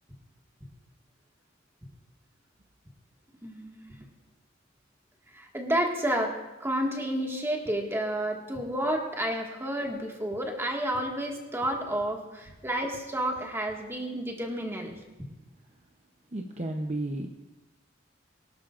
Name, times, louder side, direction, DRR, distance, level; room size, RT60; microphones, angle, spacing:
voice 1, 3.4-3.9 5.3-15.0, right 1 dB, 15° right, 1 dB, 1.8 m, -30 dB
voice 2, 16.3-17.3, right 1 dB, 35° right, 2 dB, 0.8 m, -32 dB
23.5 x 12.0 x 2.5 m, 1.1 s
head